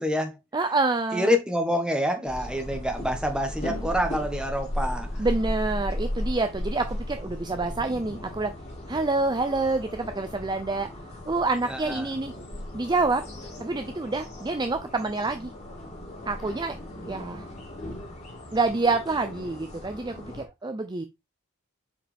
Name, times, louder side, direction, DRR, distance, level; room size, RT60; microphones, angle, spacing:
voice 1, 0.0-0.3 1.1-5.3 11.7-12.1, left 1 dB, 5° right, 1.2 m, -27 dB
voice 2, 0.5-1.3 5.2-8.5 8.9-10.9 11.3-12.3 12.7-13.2 13.6-15.5 16.3-16.8 17.1-17.5 18.5-21.0, right 3 dB, 20° right, 0.5 m, -27 dB
sound 1, 2.3-20.4, left 1 dB, 35° left, 2.5 m, -36 dB
7.4 x 4.9 x 3.5 m
head